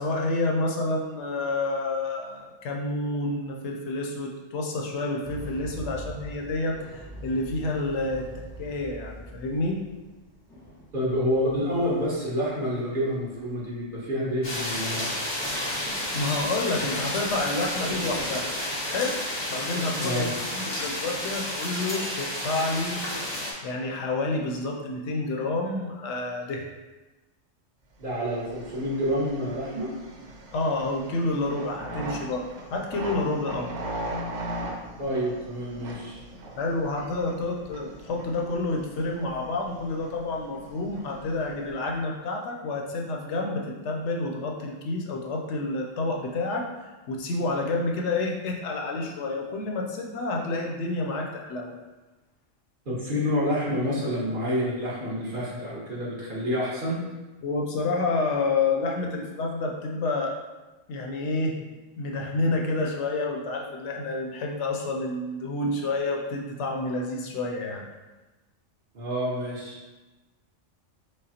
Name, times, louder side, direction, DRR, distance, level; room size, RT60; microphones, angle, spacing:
voice 1, 0.0-8.3 8.6-9.8 16.1-18.5 18.9-19.2 19.5-23.0 23.6-26.7 30.5-33.7 36.6-46.7 47.1-51.7 57.4-60.3 60.9-61.5 62.0-67.8, left 2 dB, 70° left, 0 dB, 0.8 m, -29 dB
sound 1, 5.2-17.8, right 1 dB, 5° left, 0.9 m, -45 dB
voice 2, 10.9-15.0 20.0-20.3 28.0-29.9 35.0-36.2 52.9-57.0 68.9-69.9, equal, 45° right, -7 dB, 1.2 m, -28 dB
sound 2, 14.4-23.5, left 1 dB, 30° left, 0.6 m, -31 dB
sound 3, 28.1-42.0, right 1 dB, 85° right, 1.0 m, -39 dB
5.1 x 2.0 x 2.8 m, 1.1 s
omnidirectional pair, 1.3 m